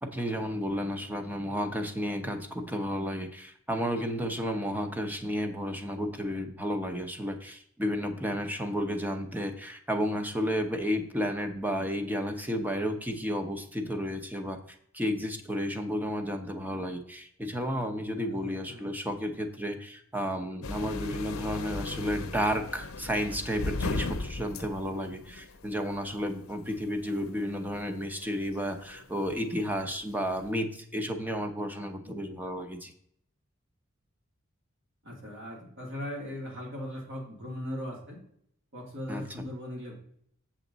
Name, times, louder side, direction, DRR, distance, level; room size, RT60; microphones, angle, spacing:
voice 1, 0.0-14.6 14.9-32.9 39.1-39.2, equal, 10° right, 6 dB, 0.9 m, -32 dB
voice 2, 18.3-18.9 21.1-21.2 32.0-32.2 35.0-38.2 38.7-39.9, left 1 dB, 65° right, -2 dB, 3.0 m, -39 dB
sound 1, 20.6-30.5, left 3 dB, 85° left, 0.7 m, -38 dB
7.4 x 7.2 x 4.0 m, 0.67 s
head